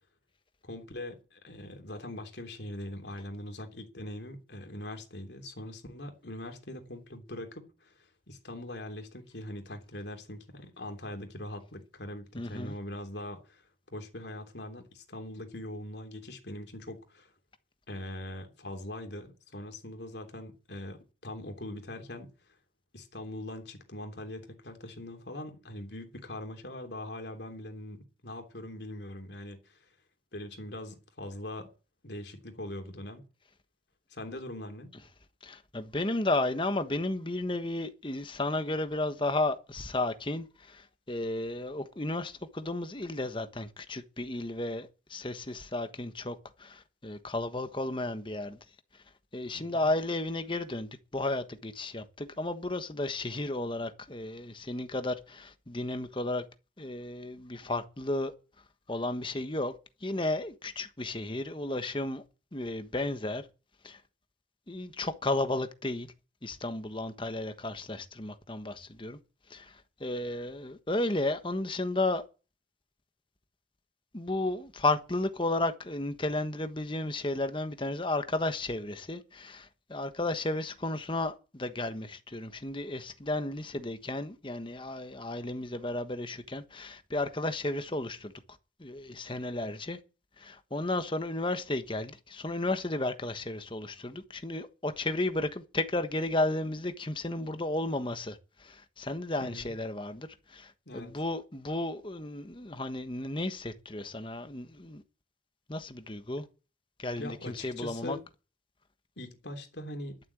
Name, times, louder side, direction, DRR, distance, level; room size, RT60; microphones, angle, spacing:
voice 1, 0.6-13.6 13.9-17.3 17.9-22.3 22.9-29.8 30.3-31.7 32.0-33.2 34.1-34.9 49.5-49.9 99.4-99.7 100.9-101.1 107.2-108.2 109.2-110.2, left 1 dB, 70° left, 3.2 m, -42 dB
voice 2, 12.3-12.7 35.4-48.6 49.3-56.4 56.8-58.3 58.9-59.7 60.0-62.2 62.5-63.5 63.8-64.0 64.7-66.1 66.4-69.2 69.5-72.2 74.1-88.3 88.8-90.0 90.4-105.0 105.7-106.4 107.0-108.2, left 2 dB, 30° left, 1.3 m, -33 dB
12.0 x 7.6 x 8.5 m
head